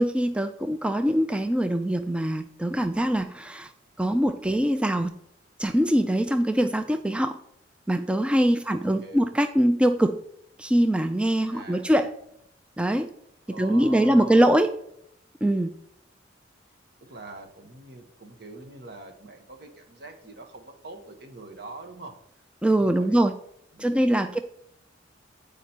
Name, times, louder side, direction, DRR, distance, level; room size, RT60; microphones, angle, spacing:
voice 1, 0.0-3.7 4.0-5.1 5.6-7.3 7.9-10.2 10.6-12.1 12.8-13.1 13.6-14.7 15.4-15.8 22.6-23.3 23.8-24.4, right 1 dB, 5° right, 7 dB, 0.3 m, -23 dB
voice 2, 8.6-9.3 11.4-11.9 13.5-14.5 17.0-22.2 22.7-23.2 23.7-24.4, right 2 dB, 55° right, 4 dB, 1.3 m, -44 dB
8.2 x 5.0 x 4.4 m, 0.73 s
head